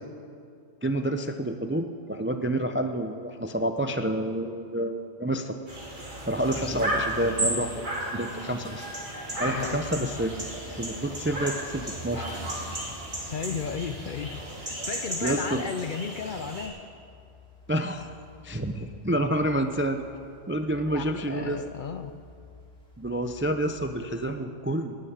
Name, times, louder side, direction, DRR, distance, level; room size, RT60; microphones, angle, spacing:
voice 1, 0.8-5.6 6.3-8.9 9.4-10.4 10.7-12.3 15.2-15.6 17.7-18.2 18.4-20.0 20.5-21.6 23.0-25.0, right 1 dB, 20° right, 7 dB, 0.3 m, -28 dB
sound 1, 5.7-16.7, right 1 dB, 40° right, 2.9 m, -34 dB
sound 2, 6.4-24.4, left 1 dB, 5° left, 2.9 m, -48 dB
voice 2, 9.4-10.1 13.3-16.8 20.9-22.1, left 6 dB, 55° left, 9 dB, 0.6 m, -34 dB
11.5 x 9.8 x 9.5 m, 2.4 s
omnidirectional pair, 1.3 m